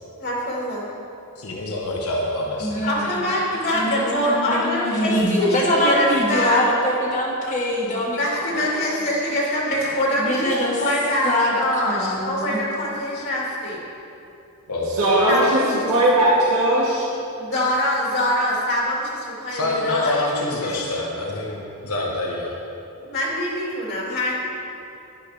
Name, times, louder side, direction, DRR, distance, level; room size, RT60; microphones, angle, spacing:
voice 1, 0.2-0.8 2.8-5.1 5.4-6.9 8.2-13.8 15.3-15.9 17.4-20.9 23.0-24.3, left 1 dB, 55° left, -5 dB, 2.5 m, -24 dB
voice 2, 1.4-2.8 14.7-14.9 19.5-22.5, left 2 dB, 90° left, -2 dB, 1.3 m, -26 dB
voice 3, 2.6-3.2 3.7-8.9 10.2-10.8 11.2-12.6, equal, 35° left, -4 dB, 1.9 m, -23 dB
voice 4, 15.0-15.6 15.9-17.1, right 1 dB, 80° right, -8 dB, 2.0 m, -18 dB
11.5 x 10.5 x 3.4 m, 2.8 s
head